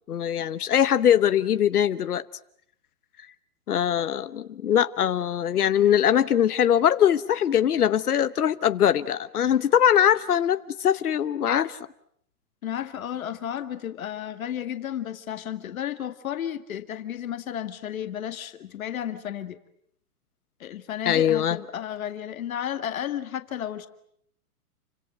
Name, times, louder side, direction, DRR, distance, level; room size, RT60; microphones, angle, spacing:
voice 1, 0.1-2.2 3.7-11.8 21.1-21.6, left 9 dB, 85° left, 13 dB, 1.1 m, -22 dB
voice 2, 12.6-19.6 20.6-23.9, left 10 dB, 65° left, 9 dB, 2.0 m, -33 dB
29.0 x 25.5 x 7.9 m, 0.70 s
hypercardioid pair, 145°, 44 cm